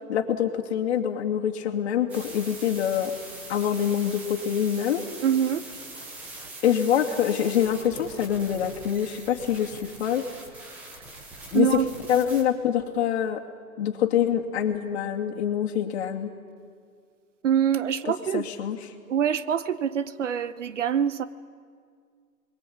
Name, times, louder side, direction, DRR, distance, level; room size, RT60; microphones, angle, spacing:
voice 1, 0.1-3.2 3.5-5.0 6.6-10.2 11.5-11.8 12.1-13.4 13.8-16.3 18.0-18.8, left 9 dB, 45° left, 2 dB, 2.6 m, -25 dB
sound 1, 2.1-12.4, right 2 dB, 5° right, 0.6 m, -42 dB
voice 2, 5.2-5.6 11.5-11.9 17.4-18.5 19.1-21.2, right 9 dB, 50° right, 14 dB, 1.0 m, -24 dB
28.5 x 22.0 x 8.7 m, 2.1 s
hypercardioid pair, 160°, 46 cm